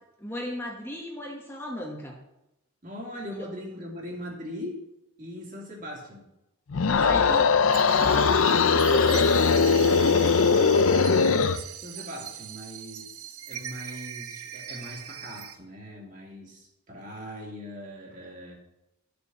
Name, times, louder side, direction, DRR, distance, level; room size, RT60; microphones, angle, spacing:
voice 1, 0.2-2.2 3.4-3.5 7.0-7.5 8.0-9.5, left 1 dB, 10° left, -2 dB, 1.3 m, -35 dB
voice 2, 2.8-4.8 5.2-6.3 6.7-7.4 10.9-18.6, equal, 35° right, -2 dB, 3.0 m, -40 dB
sound 1, 6.7-11.6, left 5 dB, 65° left, 0.5 m, -20 dB
sound 2, 7.7-15.5, right 10 dB, 80° right, 0.9 m, -39 dB
13.0 x 6.9 x 6.1 m, 0.91 s
head